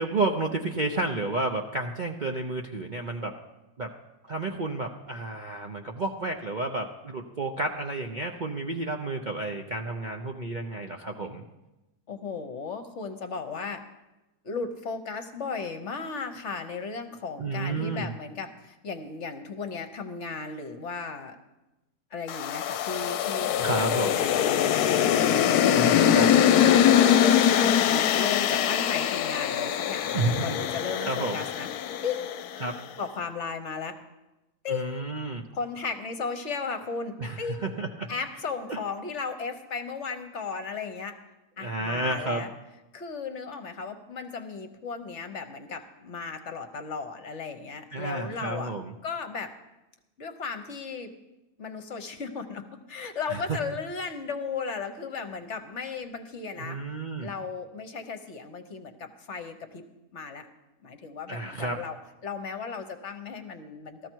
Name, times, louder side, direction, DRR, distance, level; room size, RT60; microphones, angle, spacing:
voice 1, 0.0-3.3 3.8-3.9 4.3-11.4 17.4-18.1 23.5-24.2 25.7-26.3 30.1-30.6 31.1-31.4 32.6-32.8 34.7-35.4 37.2-38.1 38.7-38.8 41.6-42.4 47.9-48.9 53.3-53.4 56.6-57.3 61.3-61.8, right 2 dB, 45° right, 2 dB, 0.6 m, -31 dB
voice 2, 12.1-13.8 14.4-21.4 22.1-31.7 32.0-32.4 33.0-34.0 34.6-35.1 35.5-37.8 38.1-41.2 41.6-42.5 42.9-48.8 49.0-49.5 50.2-51.1 51.6-52.6 52.9-56.8 57.2-59.8 60.1-60.5 60.8-62.0 62.2-64.1, left 5 dB, 50° left, 8 dB, 1.1 m, -35 dB
sound 1, 22.3-32.6, left 9 dB, 75° left, 1.1 m, -23 dB
14.0 x 13.5 x 4.6 m, 1.0 s
omnidirectional pair, 1.7 m